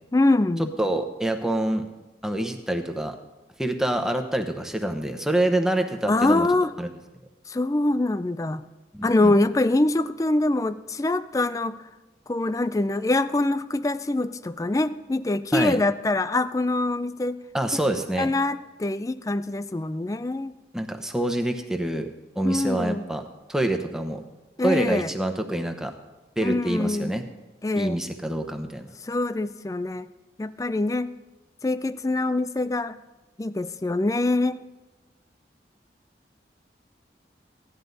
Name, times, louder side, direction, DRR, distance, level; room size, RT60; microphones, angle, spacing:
voice 1, 0.1-0.7 6.1-6.7 7.5-8.6 9.0-11.8 12.3-17.4 17.7-17.8 18.2-20.5 22.4-23.0 24.6-25.1 26.4-27.1 27.6-28.0 29.0-30.1 30.4-31.1 31.6-32.9 33.4-34.6, left 2 dB, 20° left, 14 dB, 0.3 m, -24 dB
voice 2, 0.8-1.8 2.2-3.2 3.6-6.5 6.8-6.9 8.9-9.3 15.5-15.8 17.5-18.3 20.7-22.1 22.4-23.2 23.5-24.2 24.6-25.9 26.4-27.2 27.8-28.9, right 1 dB, 5° right, 5 dB, 0.8 m, -26 dB
16.5 x 11.0 x 4.0 m, 1.1 s
head